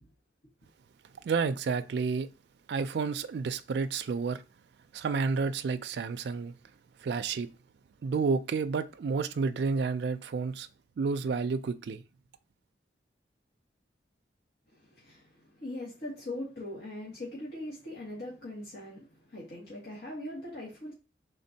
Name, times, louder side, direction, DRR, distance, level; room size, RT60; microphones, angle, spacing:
voice 1, 1.2-2.3 2.7-4.4 4.9-6.5 7.0-7.5 8.0-10.7 11.0-12.0, right 5 dB, 65° right, 0.3 m, -30 dB
voice 2, 14.7-20.9, left 1 dB, 65° left, 1.6 m, -41 dB
5.1 x 3.8 x 2.7 m
head